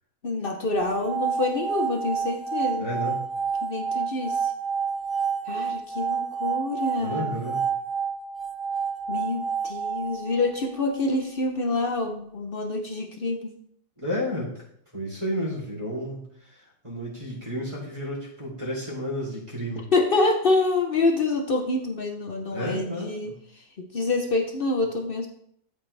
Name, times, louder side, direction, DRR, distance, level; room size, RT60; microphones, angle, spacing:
voice 1, 0.2-2.9 3.6-4.5 5.5-7.4 9.1-13.5 19.9-23.3 23.8-25.3, left 3 dB, 60° left, 3 dB, 0.5 m, -26 dB
sound 1, 0.7-10.9, right 6 dB, ahead, 0.7 m, -29 dB
voice 2, 2.8-3.2 7.0-7.6 14.0-14.5 14.9-16.2 16.5-19.9 22.5-23.3, equal, 15° right, -5 dB, 3.2 m, -31 dB
12.5 x 5.0 x 3.3 m, 0.69 s
omnidirectional pair, 2.0 m